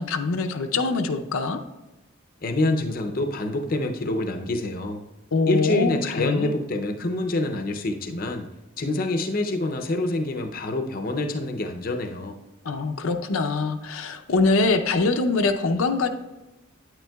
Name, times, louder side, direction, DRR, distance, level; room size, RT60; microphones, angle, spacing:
voice 1, 0.0-1.6 5.3-6.5 12.6-16.1, left 3 dB, 90° left, 6 dB, 0.6 m, -23 dB
voice 2, 2.4-5.0 5.5-8.5 8.8-12.4, left 2 dB, 45° left, 5 dB, 0.5 m, -26 dB
9.3 x 9.0 x 2.3 m, 1.1 s
head